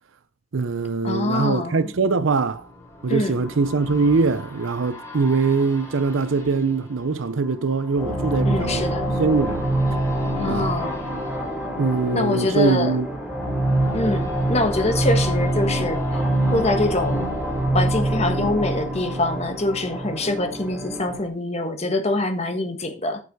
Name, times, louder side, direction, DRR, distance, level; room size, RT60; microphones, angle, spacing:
voice 1, 0.5-2.7 3.0-8.9 9.2-9.6 10.5-10.7 11.8-13.1, right 4 dB, 80° right, 0.6 m, -22 dB
sound 1, 0.8-18.5 18.9-19.0, left 2 dB, 15° left, 3.4 m, -42 dB
voice 2, 1.0-1.8 3.1-3.4 8.4-9.1 10.4-11.0 12.1-12.9 13.9-16.0 16.5-17.3 17.7-23.2, left 2 dB, 35° left, 1.5 m, -24 dB
sound 2, 7.9-21.3, right 1 dB, 5° right, 2.3 m, -25 dB
9.5 x 7.0 x 4.7 m
head